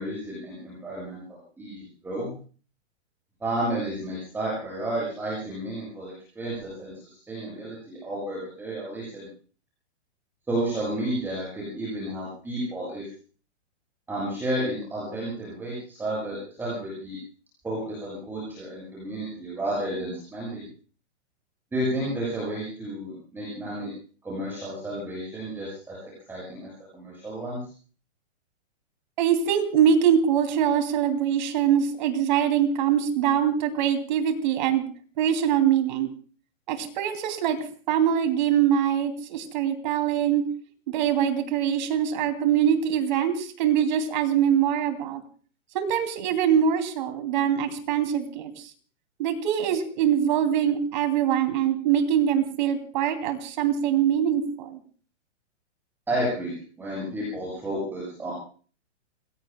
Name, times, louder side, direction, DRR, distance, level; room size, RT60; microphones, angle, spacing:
voice 1, 0.0-2.3 3.4-9.3 10.5-13.1 14.1-17.2 17.6-20.6 21.7-23.9 24.2-26.0 26.3-27.6 56.1-58.3, right 1 dB, 5° right, -6 dB, 7.5 m, -32 dB
voice 2, 29.2-34.8 35.2-36.1 36.7-37.6 37.9-40.4 40.9-45.2 45.7-48.7 49.2-54.8, right 9 dB, 40° right, 7 dB, 2.8 m, -23 dB
29.5 x 20.5 x 2.3 m, 0.41 s
hypercardioid pair, 170°, 36 cm